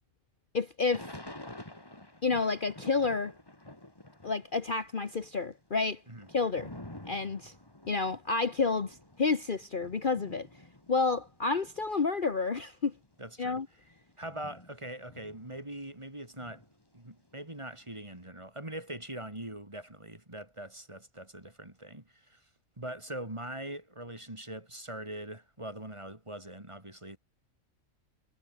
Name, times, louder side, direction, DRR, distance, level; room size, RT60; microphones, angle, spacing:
voice 1, 0.5-1.1 2.2-3.3 4.2-6.0 6.3-6.7 7.0-7.5 7.9-10.5 10.9-12.9 13.4-13.7, left 4 dB, 40° left, 1.3 m, -30 dB
Thunder / Rain, 0.9-4.5 4.8-11.9 12.5-12.6 12.8-16.0 16.3-18.1, left 1 dB, 15° left, 2.8 m, -50 dB
voice 2, 13.2-13.6 14.2-16.6 16.9-22.4 22.8-27.2, right 1 dB, 20° right, 3.3 m, -42 dB
omnidirectional pair, 1.4 m